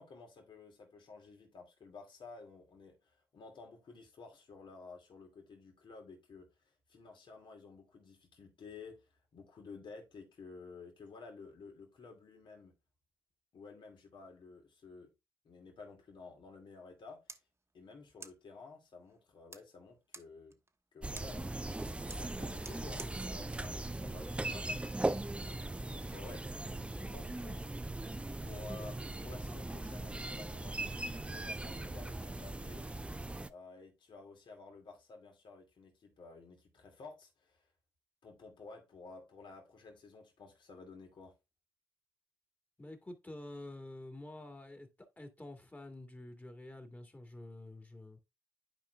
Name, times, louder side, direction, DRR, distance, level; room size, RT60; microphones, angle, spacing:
voice 1, 0.0-12.7 13.5-15.1 15.4-17.2 17.7-20.6 20.9-24.8 25.8-26.4 26.7-27.8 28.4-32.9 33.5-37.6 38.2-41.3, left 4 dB, 60° left, 2.4 m, -53 dB
sound 1, 16.9-24.9, right 3 dB, 30° right, 1.1 m, -57 dB
sound 2, 21.0-33.5, right 2 dB, 10° right, 0.5 m, -39 dB
voice 2, 24.0-24.6 26.1-26.3 26.5-26.7 42.8-44.9 45.2-48.2, left 1 dB, 20° left, 2.1 m, -49 dB
10.5 x 4.6 x 2.4 m
supercardioid pair, 55°, 9 cm